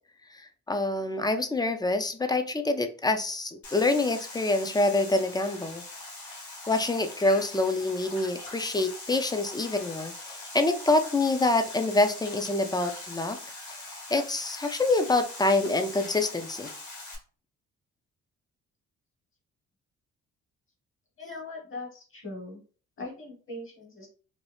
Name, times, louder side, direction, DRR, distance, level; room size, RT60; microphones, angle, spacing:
voice 1, 0.3-5.8 6.7-13.4 13.7-16.7, left 2 dB, 15° left, 7 dB, 0.3 m, -26 dB
sound 1, 3.6-17.2, left 2 dB, 70° left, 1.1 m, -42 dB
voice 2, 21.2-22.6 23.0-24.1, left 2 dB, 45° left, 1 dB, 1.3 m, -40 dB
2.6 x 2.3 x 3.3 m, 0.39 s
cardioid pair, 90°, 30 cm